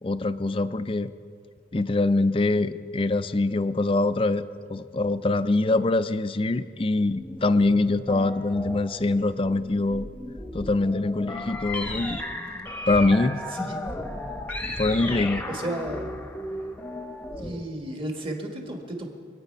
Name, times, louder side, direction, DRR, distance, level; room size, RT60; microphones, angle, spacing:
voice 1, 0.0-1.1 1.7-10.1 10.5-12.2 12.9-13.7 14.8-15.4, left 2 dB, 30° left, 13 dB, 0.4 m, -24 dB
sound 1, 7.1-17.8, left 1 dB, 10° left, 0.9 m, -35 dB
voice 2, 15.5-16.1 17.4-19.1, right 1 dB, 30° right, 2 dB, 1.6 m, -33 dB
25.0 x 9.0 x 5.4 m, 2.3 s
head